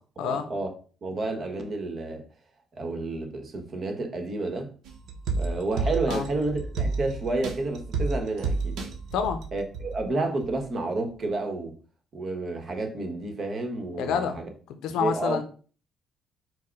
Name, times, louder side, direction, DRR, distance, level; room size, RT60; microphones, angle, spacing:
voice 1, 0.2-0.7 1.0-2.2 2.8-4.7 5.3-8.8 9.5-11.7 12.1-14.5 15.0-15.4, right 2 dB, 50° right, 1.1 m, -30 dB
sound 1, 4.9-10.0 10.4-10.5, right 3 dB, 80° right, 0.7 m, -31 dB
voice 2, 14.0-14.4 14.8-15.4, left 7 dB, 80° left, 0.5 m, -27 dB
4.7 x 2.1 x 4.5 m
cardioid pair, 75°, 0 cm